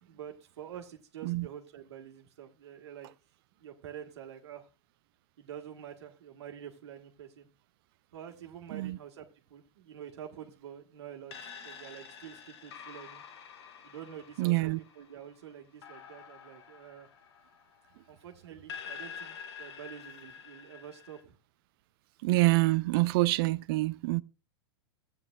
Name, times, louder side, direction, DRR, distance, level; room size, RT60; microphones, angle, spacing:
voice 1, 0.0-3.1 3.6-4.7 5.4-7.5 8.1-11.3 11.6-13.2 13.8-14.7 14.9-17.1 18.1-21.4, right 9 dB, 75° right, 1.5 m, -47 dB
sound 1, 11.3-18.2 18.7-21.2, left 7 dB, 70° left, 1.4 m, -48 dB
voice 2, 14.4-14.8 22.2-24.2, right 21 dB, 60° right, 0.4 m, -26 dB
15.0 x 8.9 x 2.4 m
hypercardioid pair, 105°, 14 cm